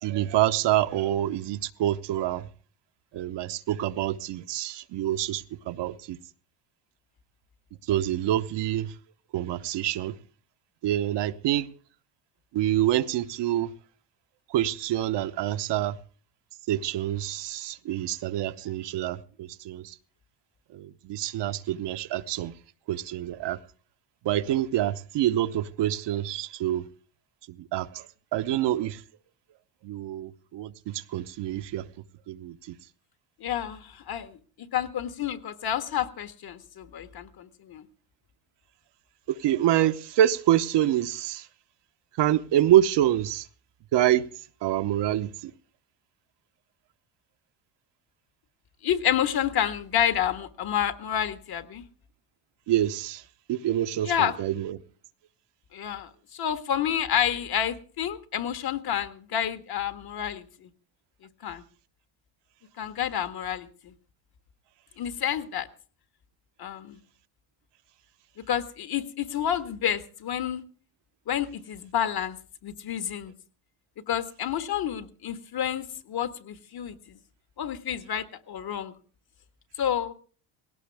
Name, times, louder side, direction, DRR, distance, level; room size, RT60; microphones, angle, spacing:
voice 1, 0.0-2.5 3.1-6.2 7.9-8.9 9.3-10.1 10.8-11.7 12.5-13.7 14.5-16.0 16.7-20.0 20.7-22.5 22.9-23.6 24.2-26.8 27.6-29.0 29.8-31.9 32.3-32.8 39.3-41.5 42.2-43.5 43.9-44.2 44.6-45.5 52.7-53.2 53.5-54.8, right 12 dB, 65° right, 1.0 m, -26 dB
voice 2, 33.4-37.8 48.8-51.8 54.0-54.3 55.7-60.7 61.4-61.6 62.8-63.9 65.0-65.7 66.6-67.0 68.5-70.6 71.3-72.4 72.6-73.3 74.1-77.2 77.6-78.9 79.8-80.1, left 9 dB, 50° left, 1.7 m, -29 dB
18.5 x 17.5 x 3.5 m
supercardioid pair, 90°, 47 cm